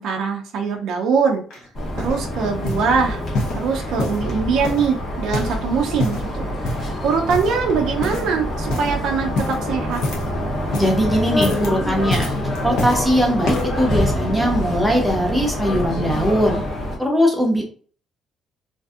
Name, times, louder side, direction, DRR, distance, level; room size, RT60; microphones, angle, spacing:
voice 1, 0.0-1.4 2.0-3.2 3.5-6.7 7.0-10.0, right 5 dB, 60° right, 2 dB, 0.4 m, -22 dB
sound 1, 1.5-2.2 2.6-2.9 3.3-4.3 4.6-5.6 5.9-6.3 6.6-6.9 7.3-7.7 8.0-8.3 8.6-8.9 9.3-10.4 10.6-11.0 11.3-11.7 12.1-13.0 13.4-13.8 14.5-14.6, left 2 dB, 70° left, 0.8 m, -27 dB
sound 2, 1.7-17.0, left 1 dB, 35° left, 0.7 m, -26 dB
voice 2, 10.7-12.3 12.6-16.6 17.0-17.6, equal, ahead, 0 dB, 0.6 m, -20 dB
2.5 x 2.5 x 2.4 m, 0.43 s
cardioid pair, 175°, 0 cm